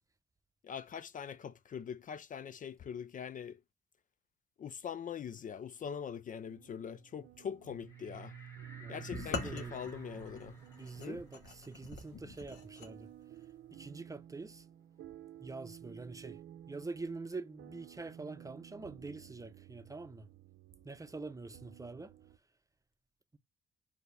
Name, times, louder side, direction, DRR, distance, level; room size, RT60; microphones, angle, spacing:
voice 1, 0.6-3.6 4.6-8.3 8.9-10.6 11.0-11.2, left 7 dB, 50° left, 0.4 m, -43 dB
sound 1, 6.5-22.4, right 11 dB, 90° right, 0.7 m, -53 dB
sound 2, 7.9-13.1 13.4-13.5 13.8-15.5, equal, 15° left, 1.8 m, -57 dB
voice 2, 8.8-9.9 10.5-13.1 13.7-14.7 15.4-16.4 16.7-20.3 20.8-22.1, right 3 dB, 20° right, 0.7 m, -45 dB
sound 3, 9.1-12.9, left 3 dB, 75° left, 1.2 m, -43 dB
4.5 x 2.8 x 3.3 m
supercardioid pair, 60°, 18 cm